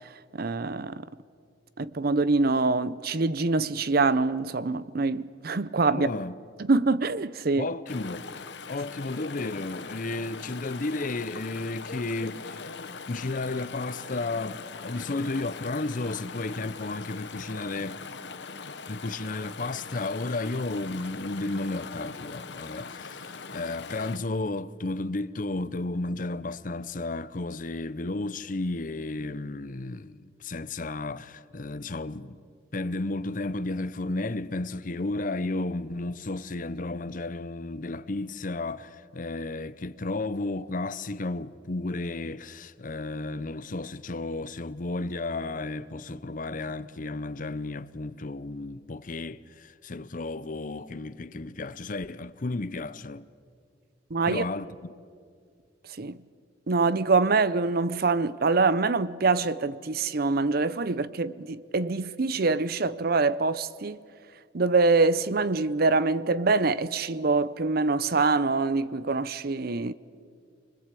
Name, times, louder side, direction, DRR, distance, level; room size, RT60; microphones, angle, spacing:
voice 1, 0.3-1.0 1.8-6.1 6.6-7.7 54.1-54.4 56.0-56.2 56.7-64.0 64.5-69.9, right 3 dB, 55° right, 0.6 m, -25 dB
voice 2, 5.9-6.3 7.6-8.3 8.7-18.0 18.9-32.4 32.7-53.3 54.3-54.8, left 2 dB, 45° left, 0.7 m, -33 dB
Chatter / Stream, 7.9-24.2, left 4 dB, 65° left, 1.1 m, -41 dB
26.0 x 21.0 x 8.4 m
head